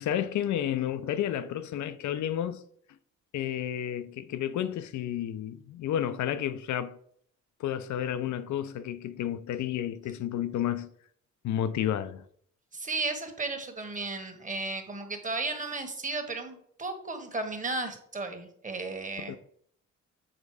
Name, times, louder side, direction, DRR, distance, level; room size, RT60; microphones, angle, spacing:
voice 1, 0.0-2.6 3.3-7.0 7.6-10.9 11.4-12.2 19.3-19.4, left 10 dB, 70° left, 0.7 m, -31 dB
voice 2, 12.7-19.4, right 3 dB, 25° right, 1.4 m, -34 dB
7.5 x 3.9 x 4.9 m
cardioid pair, 90°, 30 cm